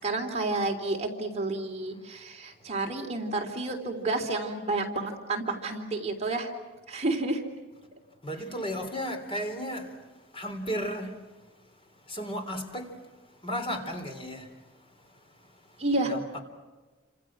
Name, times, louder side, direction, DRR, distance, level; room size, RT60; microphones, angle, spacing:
voice 1, 0.0-6.5 6.9-7.4 15.8-16.1, right 2 dB, 35° right, 3.4 m, -30 dB
voice 2, 2.0-2.7 8.2-16.4, equal, 25° left, 3.8 m, -36 dB
29.5 x 27.0 x 6.2 m
head